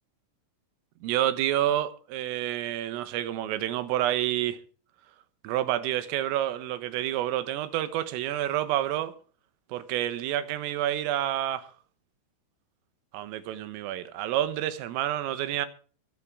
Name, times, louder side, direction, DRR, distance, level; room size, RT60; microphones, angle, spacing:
voice 1, 1.0-4.6 5.4-9.1 9.7-11.7 13.1-15.7, right 12 dB, 80° right, 3.7 m, -28 dB
22.5 x 8.6 x 4.8 m
omnidirectional pair, 6.0 m